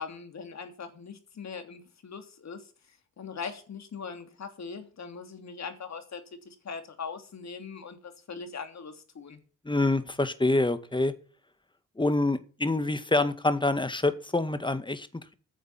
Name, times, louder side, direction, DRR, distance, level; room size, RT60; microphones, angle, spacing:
voice 1, 0.0-2.7 3.2-9.4, left 5 dB, 55° left, 3.2 m, -41 dB
voice 2, 9.6-11.1 12.0-15.3, left 2 dB, 15° left, 2.1 m, -26 dB
10.0 x 7.3 x 9.3 m
supercardioid pair, 60°, 32 cm